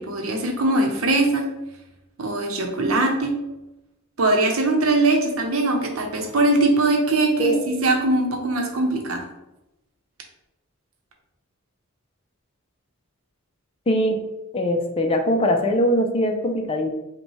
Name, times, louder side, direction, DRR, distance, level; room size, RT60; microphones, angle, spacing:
voice 1, 0.0-1.5 2.2-3.3 4.2-9.3, right 2 dB, 75° right, 2 dB, 0.8 m, -21 dB
voice 2, 13.9-14.2 14.5-16.9, equal, 25° left, 3 dB, 0.5 m, -21 dB
5.3 x 2.3 x 3.1 m, 0.94 s
head